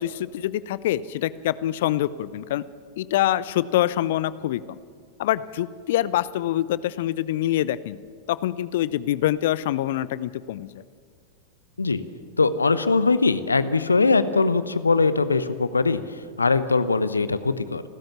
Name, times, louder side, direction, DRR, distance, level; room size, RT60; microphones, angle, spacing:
voice 1, 0.0-2.6 3.0-4.6 5.2-8.0 8.3-10.7, left 13 dB, 55° left, 18 dB, 0.6 m, -25 dB
voice 2, 12.4-16.0 16.4-17.8, left 4 dB, 80° left, 14 dB, 0.9 m, -21 dB
28.5 x 13.0 x 7.2 m, 2.1 s
figure-of-eight pair, 90°, 0 cm